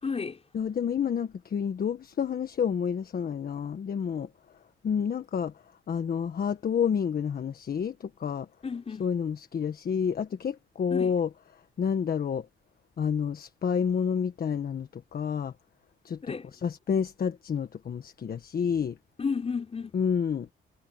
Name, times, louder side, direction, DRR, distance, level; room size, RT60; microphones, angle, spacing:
voice 1, 0.0-0.4 8.6-9.1 10.9-11.1 16.2-16.5 19.2-20.0, left 5 dB, 30° left, 3.8 m, -32 dB
voice 2, 0.5-4.3 4.8-5.5 5.9-8.5 9.0-11.3 11.8-12.5 13.0-15.5 16.0-16.2 16.6-19.0 19.9-20.5, left 7 dB, 50° left, 1.5 m, -29 dB
cardioid pair, 90°, 20 cm